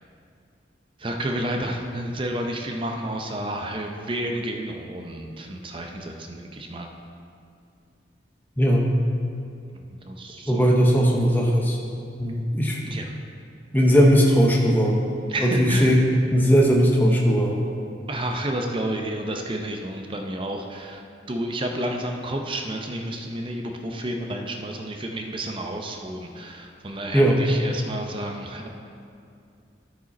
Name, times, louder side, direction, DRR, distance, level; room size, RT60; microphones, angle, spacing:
voice 1, 1.0-6.9 9.8-10.7 12.8-13.1 15.3-16.0 18.1-28.7, right 1 dB, 30° right, 3 dB, 0.6 m, -31 dB
voice 2, 8.6-8.9 10.5-11.8 12.2-12.8 13.7-15.0 15.4-17.6 27.1-27.4, equal, 10° left, -1 dB, 0.7 m, -18 dB
12.5 x 5.1 x 4.1 m, 2.4 s
head